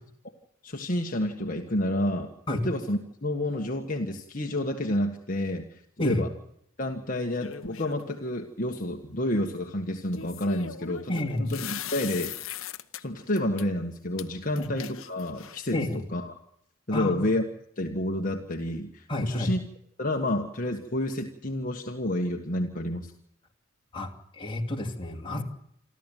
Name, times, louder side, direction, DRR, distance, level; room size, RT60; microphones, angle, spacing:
voice 1, 0.6-2.3 2.6-6.3 6.8-12.3 13.0-15.8 16.1-16.3 16.9-17.4 17.8-19.6 20.0-23.1, left 1 dB, 40° left, 2 dB, 1.6 m, -29 dB
sound 1, 7.4-8.2 10.1-13.0 13.4-13.6 14.2-14.3 14.6-15.7, left 9 dB, 70° left, 1.0 m, -39 dB
voice 2, 11.1-11.5 14.6-14.7 15.7-16.0 16.9-17.3 19.1-19.5 23.9-25.4, left 1 dB, 25° left, 1 dB, 2.7 m, -30 dB
28.0 x 12.5 x 9.2 m, 0.73 s
head